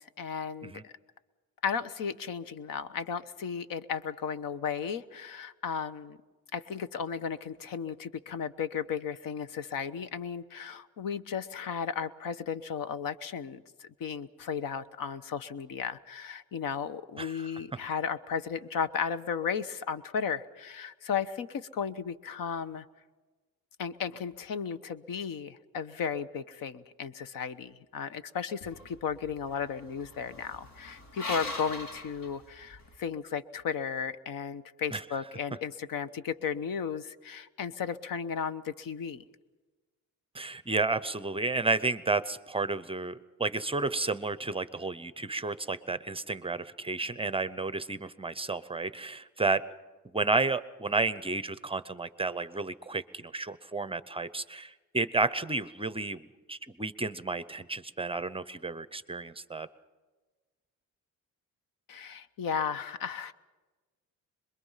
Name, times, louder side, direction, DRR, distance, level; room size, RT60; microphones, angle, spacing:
voice 1, 0.2-0.9 1.6-6.2 6.5-22.8 23.8-39.2 61.9-63.3, left 7 dB, 70° left, 14 dB, 1.1 m, -35 dB
sound 1, 28.6-33.0, left 2 dB, 50° left, 4.4 m, -42 dB
voice 2, 40.3-49.6 50.1-56.2 56.5-59.7, right 3 dB, 15° right, 14 dB, 0.7 m, -31 dB
26.5 x 22.0 x 5.7 m, 1.2 s
cardioid pair, 125°, 35 cm